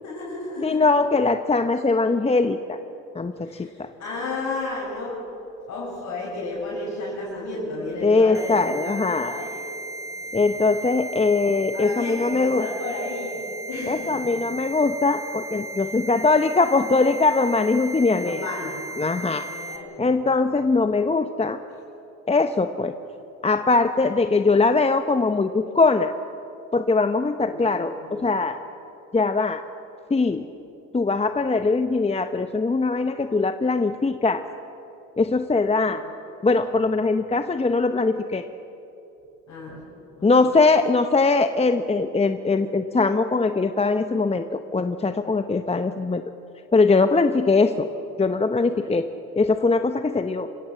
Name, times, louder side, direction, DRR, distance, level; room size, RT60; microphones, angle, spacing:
voice 1, 0.0-0.8 3.4-5.2 5.7-9.7 10.1-10.7 11.7-14.4 18.1-18.8 19.5-20.3 27.5-28.3 35.8-36.0 39.5-40.5 48.7-48.9, left 2 dB, 55° left, -7 dB, 6.7 m, -33 dB
voice 2, 0.6-2.8 3.1-3.9 8.0-9.4 10.3-12.7 13.9-18.5 19.0-19.5 20.0-21.6 22.3-22.9 23.4-26.1 26.7-28.6 29.1-29.6 30.1-30.5 30.9-34.4 35.2-36.0 36.4-38.5 40.2-46.2 46.7-47.9 48.2-49.1 49.4-50.5, left 3 dB, 20° left, 9 dB, 0.9 m, -21 dB
sound 1, 8.3-19.8, right 2 dB, 10° right, 3.2 m, -36 dB
26.5 x 16.0 x 7.7 m, 2.9 s
supercardioid pair, 65°, 33 cm